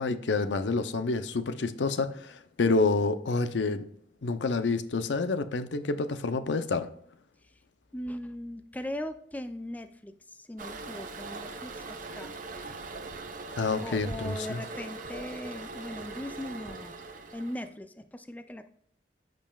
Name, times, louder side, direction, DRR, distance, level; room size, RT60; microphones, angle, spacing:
voice 1, 0.0-3.8 4.2-6.9 13.6-14.6, left 3 dB, 85° left, 10 dB, 0.6 m, -28 dB
voice 2, 7.9-12.4 13.8-17.0 17.3-18.7, left 1 dB, 10° left, 9 dB, 0.4 m, -39 dB
Toilet flush, 10.6-17.7, right 3 dB, 50° right, 0.9 m, -41 dB
14.0 x 5.3 x 2.3 m, 0.65 s
head